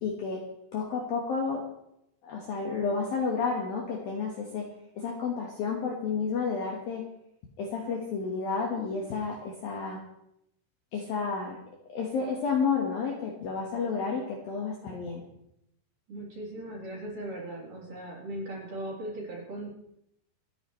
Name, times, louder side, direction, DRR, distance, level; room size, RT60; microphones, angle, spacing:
voice 1, 0.0-0.4 0.7-1.6 2.2-4.6 5.0-7.0 7.6-10.0 10.9-11.6 11.9-15.2, left 5 dB, 60° left, -1 dB, 2.6 m, -31 dB
voice 2, 16.1-19.7, right 1 dB, 45° right, -4 dB, 4.9 m, -38 dB
28.0 x 10.0 x 3.3 m, 0.79 s
omnidirectional pair, 6.0 m